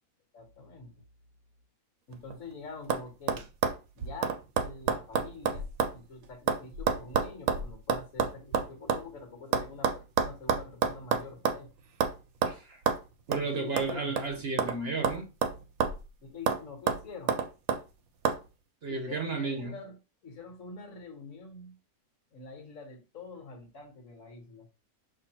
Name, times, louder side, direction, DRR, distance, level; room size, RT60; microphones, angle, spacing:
voice 1, 0.3-0.9 2.1-3.5 3.9-11.7 13.4-14.1 16.2-17.4 18.9-19.9 20.2-21.8 22.3-24.7, left 3 dB, 65° left, 1.5 m, -46 dB
sound 1, 2.1-2.5 2.9-3.0 3.3-6.0 6.2-9.0 9.5-11.7 12.0-12.2 12.4-12.6 12.9-13.0 13.3-13.4 13.8-14.8 15.0-16.1 16.5-16.6 16.9-17.8 18.2-18.4, right 6 dB, 75° right, 1.1 m, -29 dB
voice 2, 12.4-12.8 13.3-15.3 18.8-19.7, right 3 dB, 50° right, 0.9 m, -33 dB
6.2 x 2.7 x 2.9 m
omnidirectional pair, 1.5 m